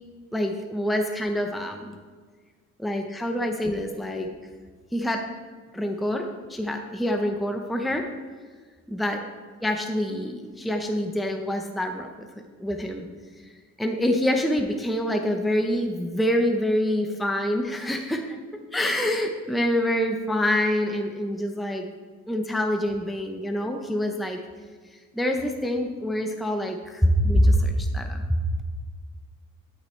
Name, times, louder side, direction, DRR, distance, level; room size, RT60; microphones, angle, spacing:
voice 1, 0.3-1.9 2.8-4.3 4.9-5.2 5.7-8.1 8.9-9.2 9.6-12.3 12.6-13.1 13.4-13.5 13.8-18.4 18.7-21.9 22.3-24.4 24.9-28.4, equal, ahead, 3 dB, 0.7 m, -26 dB
13.0 x 6.3 x 3.2 m, 1.5 s
cardioid pair, 90°, 30 cm